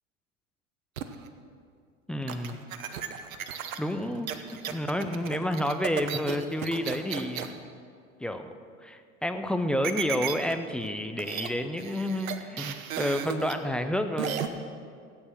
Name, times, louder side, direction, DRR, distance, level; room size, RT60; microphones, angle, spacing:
sound 1, 1.0-1.3 2.3-7.5 9.8-10.5 10.9-11.0 11.2-11.5 11.8-13.5 14.2-14.5, right 9 dB, 70° right, 1.1 m, -34 dB
voice 1, 2.1-2.6 3.8-7.6 8.2-8.5 8.8-14.5, left 1 dB, ahead, 7 dB, 0.3 m, -30 dB
17.0 x 8.8 x 6.3 m, 2.2 s
figure-of-eight pair, 85°, 43 cm